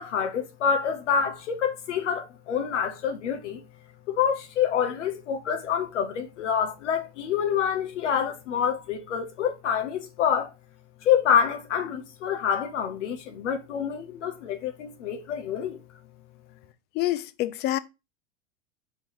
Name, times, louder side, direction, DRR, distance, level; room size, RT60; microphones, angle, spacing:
voice 1, 0.0-3.6 4.1-10.5 11.0-15.8, left 8 dB, 80° left, 0.9 m, -27 dB
voice 2, 16.9-17.8, left 15 dB, 30° left, 0.3 m, -27 dB
4.6 x 3.7 x 3.0 m
hypercardioid pair, 100°, 36 cm